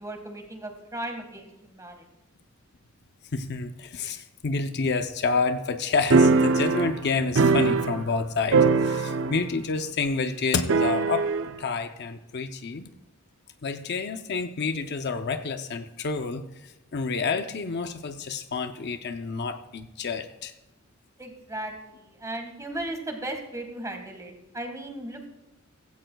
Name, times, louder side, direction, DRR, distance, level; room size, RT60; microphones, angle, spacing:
voice 1, 0.0-2.0 21.2-25.3, right 1 dB, 15° right, 4 dB, 1.6 m, -36 dB
voice 2, 3.3-11.3 11.6-12.9 13.6-20.5, left 4 dB, 55° left, 8 dB, 0.6 m, -29 dB
sound 1, 6.1-8.2 8.5-9.5 9.8-9.9 10.7-11.5, right 4 dB, 65° right, 0.6 m, -21 dB
16.0 x 15.5 x 2.3 m, 0.95 s
head